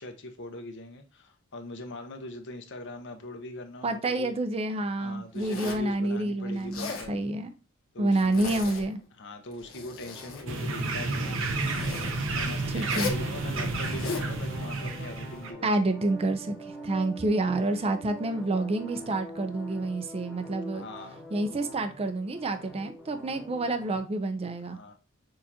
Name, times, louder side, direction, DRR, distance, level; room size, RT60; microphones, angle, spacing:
voice 1, 0.0-4.3 5.0-7.2 7.9-8.6 9.2-11.6 12.3-15.7 20.7-21.2 24.7-24.9, left 2 dB, 60° left, 0.8 m, -41 dB
voice 2, 3.8-7.5 8.0-9.0 12.7-13.1 15.6-20.8 21.3-24.8, right 2 dB, 30° right, 0.5 m, -28 dB
Zipper (clothing), 5.3-5.9 6.6-7.1 8.1-8.9 9.5-10.5 11.5-12.1 12.8-13.2 13.8-14.3, left 5 dB, 80° left, 1.3 m, -37 dB
sound 1, 10.0-24.0, right 1 dB, ahead, 0.8 m, -45 dB
sound 2, 10.5-15.5, right 2 dB, 65° right, 0.8 m, -31 dB
6.3 x 2.5 x 2.8 m
head